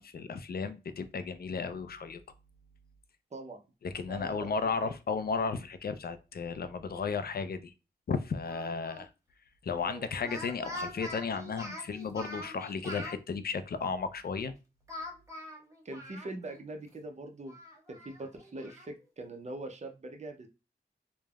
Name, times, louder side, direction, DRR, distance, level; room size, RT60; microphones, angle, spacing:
voice 1, 0.0-2.2 3.8-7.7 8.1-9.1 9.6-14.5, left 5 dB, 60° left, 0.4 m, -34 dB
voice 2, 3.3-3.6 4.1-4.5 4.8-4.9 9.9-10.1 15.8-17.6 17.9-20.5, right 2 dB, 40° right, 0.5 m, -42 dB
Speech, 8.5-9.1 10.1-13.2 14.9-16.6 16.9-17.0 17.5-18.9, left 1 dB, 15° right, 0.9 m, -44 dB
3.2 x 2.0 x 2.2 m
cardioid pair, 50°, 18 cm